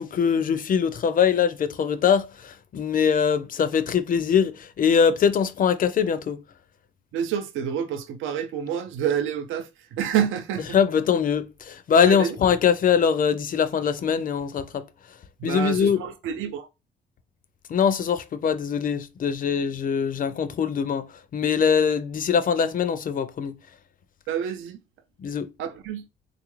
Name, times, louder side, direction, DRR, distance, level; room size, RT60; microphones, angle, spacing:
voice 1, 0.0-6.4 10.7-16.0 17.7-23.6 25.2-25.5, left 7 dB, 45° left, 0.4 m, -23 dB
voice 2, 7.1-10.8 12.1-12.4 15.4-16.7 24.3-24.8 25.6-26.1, right 8 dB, 85° right, 0.5 m, -28 dB
3.5 x 2.4 x 3.1 m
cardioid pair, 90°, 20 cm